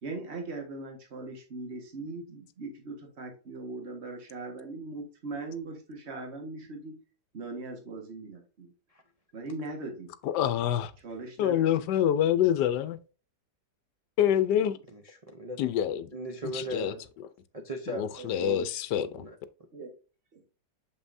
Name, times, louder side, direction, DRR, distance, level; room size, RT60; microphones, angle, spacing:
voice 1, 0.0-6.9 7.3-8.7 9.3-10.1 11.0-11.9 14.6-14.7 18.2-18.3 19.7-19.9 20.3-20.4, right 3 dB, 40° right, 1.7 m, -40 dB
voice 2, 10.2-10.9 11.4-13.0 14.2-14.8 15.6-16.1 16.5-16.9 17.9-19.2, left 10 dB, 75° left, 1.2 m, -26 dB
voice 3, 14.9-15.6 16.1-17.1 17.5-19.3, right 1 dB, 60° right, 0.4 m, -38 dB
6.8 x 5.5 x 2.6 m
omnidirectional pair, 1.9 m